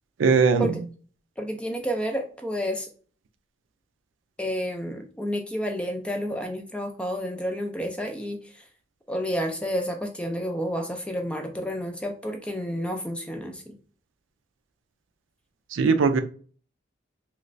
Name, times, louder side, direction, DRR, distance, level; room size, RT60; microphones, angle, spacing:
voice 1, 0.2-0.8 15.7-16.2, right 5 dB, 85° right, 9 dB, 0.4 m, -20 dB
voice 2, 1.4-2.9 4.4-8.4 9.1-13.7, equal, 5° left, 4 dB, 0.4 m, -30 dB
3.1 x 3.0 x 2.5 m, 0.42 s
head